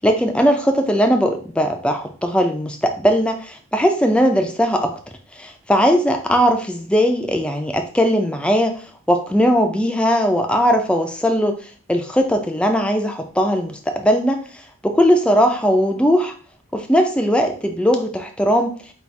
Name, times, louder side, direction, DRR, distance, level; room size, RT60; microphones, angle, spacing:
voice 1, 0.0-4.9 5.3-8.8 9.1-14.4 14.8-16.3 16.7-18.7, equal, 5° left, 4 dB, 0.4 m, -19 dB
4.1 x 2.4 x 4.6 m, 0.41 s
head